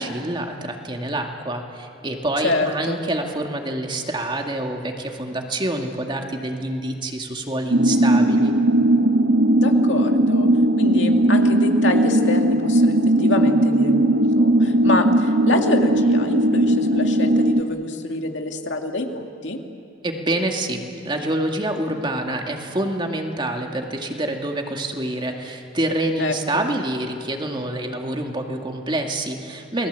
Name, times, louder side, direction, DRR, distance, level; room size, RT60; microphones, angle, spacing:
voice 1, 0.0-8.5 20.0-29.9, right 1 dB, 25° right, 2 dB, 2.1 m, -27 dB
voice 2, 2.4-3.0 9.6-10.5 10.8-19.6 26.2-26.6, left 2 dB, 90° left, 3 dB, 2.2 m, -26 dB
sound 1, 7.7-17.6, right 1 dB, 75° right, 1.1 m, -18 dB
29.0 x 20.5 x 8.3 m, 2.6 s
head